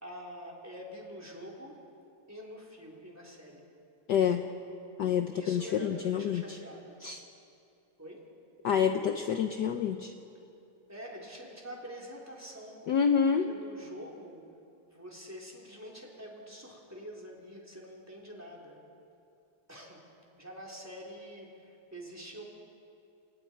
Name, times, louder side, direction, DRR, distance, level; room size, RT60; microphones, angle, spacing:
voice 1, 0.0-1.8 2.3-3.7 5.3-7.0 8.0-8.2 10.9-12.8 13.3-14.4 14.9-18.8 19.7-20.0 20.4-22.4, equal, 5° right, -2 dB, 3.7 m, -46 dB
voice 2, 4.1-4.4 5.0-6.4 7.0-7.2 8.6-10.1 12.9-13.5, left 7 dB, 60° left, 6 dB, 1.2 m, -27 dB
29.0 x 27.0 x 4.6 m, 2.6 s
omnidirectional pair, 2.4 m